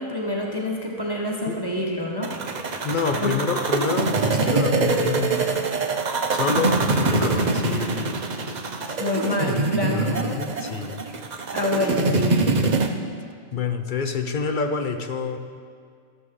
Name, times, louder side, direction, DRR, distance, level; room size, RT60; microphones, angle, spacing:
voice 1, 0.0-2.3 3.2-3.3 9.0-10.3 11.5-12.5, left 1 dB, 20° right, -1 dB, 1.1 m, -27 dB
sound 1, 2.2-12.9, right 3 dB, 40° right, 0.7 m, -24 dB
voice 2, 2.8-5.5 6.3-8.1 9.9-11.1 13.5-15.4, left 5 dB, 45° left, 7 dB, 0.7 m, -27 dB
14.0 x 12.0 x 3.9 m, 2.1 s
omnidirectional pair, 1.4 m